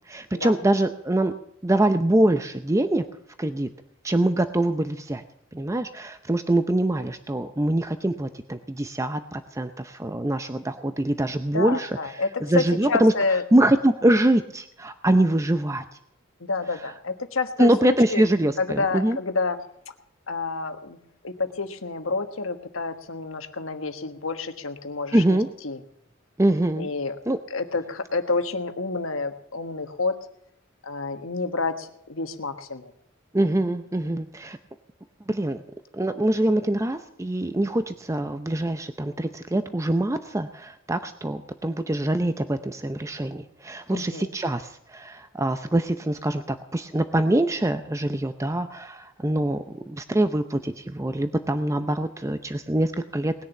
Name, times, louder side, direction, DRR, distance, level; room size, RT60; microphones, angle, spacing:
voice 1, 0.1-1.4 1.6-3.1 3.4-3.7 4.0-5.2 5.5-13.1 13.5-15.8 17.6-19.2 25.1-25.5 26.4-26.9 27.3-27.4 33.3-34.6 35.3-35.6 35.9-53.3, right 1 dB, 15° right, 9 dB, 0.6 m, -24 dB
voice 2, 11.5-13.4 16.4-18.2 18.6-19.6 20.3-21.0 21.2-25.4 25.6-25.8 26.8-27.2 27.5-30.2 30.8-32.9 43.9-44.3, left 3 dB, 75° left, 7 dB, 1.4 m, -29 dB
19.5 x 7.0 x 9.1 m, 0.72 s
head